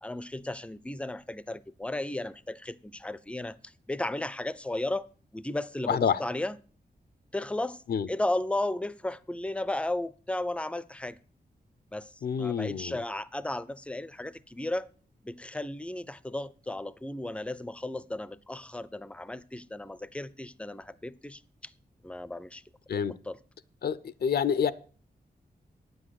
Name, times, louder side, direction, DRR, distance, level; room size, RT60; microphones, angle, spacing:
voice 1, 0.0-5.1 5.3-6.6 7.3-7.8 8.1-11.2 11.9-14.9 15.2-21.7 22.0-22.6 23.3-23.4, left 1 dB, 5° left, 0.5 m, -34 dB
voice 2, 5.9-6.2 7.9-8.1 12.2-12.9 22.9-23.1 23.8-24.7, left 7 dB, 75° left, 0.6 m, -27 dB
9.4 x 7.8 x 6.3 m
wide cardioid pair, 95°, 17 cm